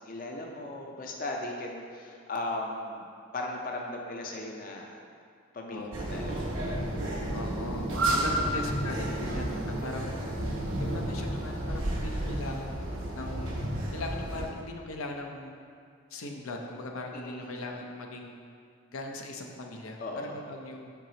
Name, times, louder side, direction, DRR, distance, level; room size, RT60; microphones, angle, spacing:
voice 1, 0.0-3.1 3.3-5.0 5.5-5.8 6.1-6.4 17.1-17.5 20.0-20.4, left 2 dB, 40° left, 1 dB, 0.5 m, -37 dB
sound 1, 5.9-14.5, right 1 dB, 75° right, 1.0 m, -31 dB
voice 2, 7.3-10.1 10.8-12.8 13.1-13.5 13.9-15.6 16.1-18.4 18.9-20.9, left 2 dB, 85° left, 2 dB, 0.6 m, -39 dB
5.6 x 4.7 x 3.9 m, 2.3 s
head